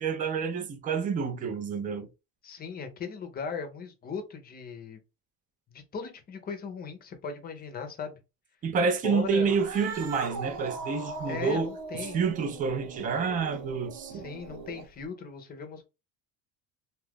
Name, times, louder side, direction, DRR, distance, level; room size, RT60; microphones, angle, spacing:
voice 1, 0.0-2.1 8.6-14.3, right 5 dB, 25° right, 0.4 m, -29 dB
voice 2, 2.4-5.0 5.7-8.2 9.0-9.5 11.3-12.2 14.1-15.8, left 5 dB, 25° left, 0.6 m, -38 dB
Cat, 9.4-15.0, right 4 dB, 65° right, 0.9 m, -39 dB
2.7 x 2.4 x 3.5 m
cardioid pair, 155°, 37 cm